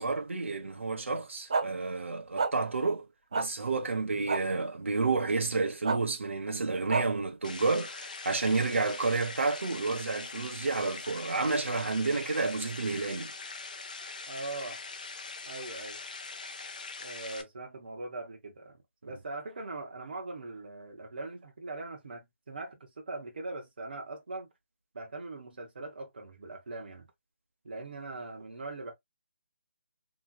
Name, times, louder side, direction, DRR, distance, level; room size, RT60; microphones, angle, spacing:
voice 1, 0.0-3.1 3.3-13.3, right 3 dB, 80° right, 1.0 m, -30 dB
sound 1, 1.5-1.7 2.4-2.5 3.3-3.5 4.3-4.4 5.8-6.0 6.9-7.0, right 4 dB, 30° right, 0.4 m, -28 dB
sound 2, 7.4-17.4, left 4 dB, 40° left, 0.6 m, -42 dB
voice 2, 14.3-14.8 15.5-16.0 17.0-24.5 24.9-27.1 27.6-28.9, right 2 dB, 50° right, 1.1 m, -41 dB
3.2 x 3.0 x 2.3 m
hypercardioid pair, 175°, 7 cm